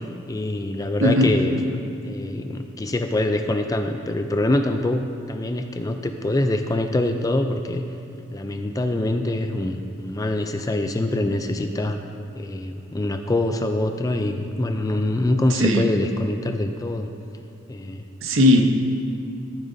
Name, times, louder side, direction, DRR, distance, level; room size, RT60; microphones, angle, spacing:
voice 1, 0.3-7.8 8.3-12.0 12.4-17.1 17.7-18.0, left 1 dB, 15° left, 6 dB, 0.3 m, -24 dB
voice 2, 1.0-1.3 15.6-15.8 18.2-18.7, left 1 dB, 65° right, 4 dB, 0.8 m, -17 dB
14.5 x 9.1 x 2.7 m, 2.6 s
head